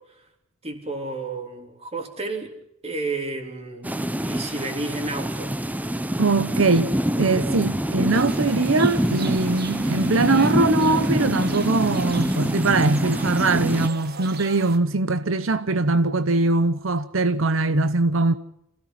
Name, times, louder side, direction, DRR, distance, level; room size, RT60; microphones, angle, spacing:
voice 1, 0.6-2.5 2.8-5.6, right 2 dB, 30° right, 3.7 m, -31 dB
sound 1, 3.8-13.9, equal, 10° right, 0.7 m, -25 dB
voice 2, 6.2-6.9 7.2-18.4, right 3 dB, 85° right, 0.9 m, -21 dB
sound 2, 8.1-14.8, right 5 dB, 50° right, 1.6 m, -39 dB
27.5 x 16.5 x 5.9 m
head